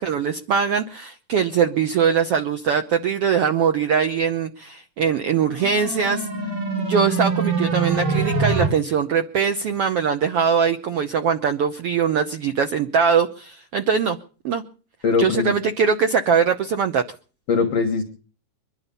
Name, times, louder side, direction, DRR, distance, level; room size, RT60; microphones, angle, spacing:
voice 1, 0.0-6.3 6.8-14.2 14.4-14.6 15.2-17.0, right 6 dB, 90° right, 7 dB, 1.3 m, -21 dB
sound 1, 5.3-8.7, right 4 dB, 55° right, 5.3 m, -24 dB
voice 2, 15.0-15.5 17.5-18.0, left 5 dB, 55° left, 5 dB, 2.3 m, -20 dB
23.0 x 11.5 x 5.4 m, 0.40 s
omnidirectional pair, 3.9 m